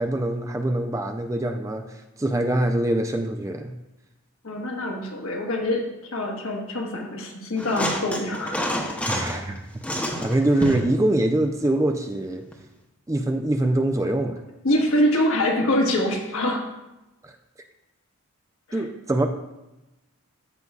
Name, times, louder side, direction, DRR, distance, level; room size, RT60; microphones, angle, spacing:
voice 1, 0.0-3.7 9.1-9.6 10.2-12.4 13.1-14.4 17.2-17.3 18.7-19.3, right 1 dB, 15° right, 6 dB, 0.3 m, -24 dB
voice 2, 4.4-5.8 6.1-8.7 14.6-16.7 18.7-18.8, left 1 dB, 70° left, 1 dB, 1.3 m, -24 dB
sound 1, 7.6-9.4 9.8-10.9 12.5-12.6, equal, 5° left, 0.8 m, -28 dB
14.0 x 5.4 x 2.3 m, 0.98 s
head